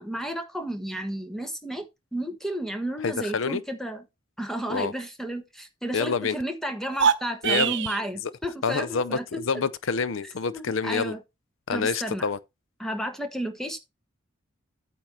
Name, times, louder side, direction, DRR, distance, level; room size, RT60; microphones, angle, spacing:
voice 1, 0.0-4.0 4.4-9.4 10.4-11.2 11.7-12.2 12.8-13.8, right 1 dB, ahead, 1.2 m, -32 dB
voice 2, 3.0-3.6 4.7-4.9 5.9-6.3 7.4-7.7 8.6-11.1 11.7-12.4, left 5 dB, 75° left, 0.5 m, -27 dB
sound 1, 6.8-8.0, right 7 dB, 60° right, 0.8 m, -24 dB
8.9 x 5.4 x 4.5 m
head